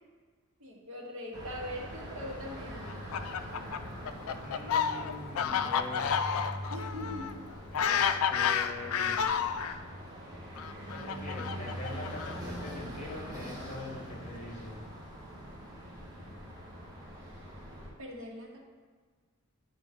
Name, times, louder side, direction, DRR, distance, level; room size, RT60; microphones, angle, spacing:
voice 1, 0.6-3.2 6.7-7.3 17.2-17.5 18.0-18.6, left 1 dB, 70° right, -3 dB, 1.7 m, -42 dB
sound 1, 1.3-17.9, equal, 20° right, 1.5 m, -43 dB
Fowl, 2.8-9.8 10.6-12.6, left 7 dB, 70° left, 0.4 m, -31 dB
voice 2, 4.4-6.1 7.7-9.2 10.9-14.8, left 2 dB, 35° left, -2 dB, 1.6 m, -43 dB
9.3 x 4.6 x 3.8 m, 1.5 s
head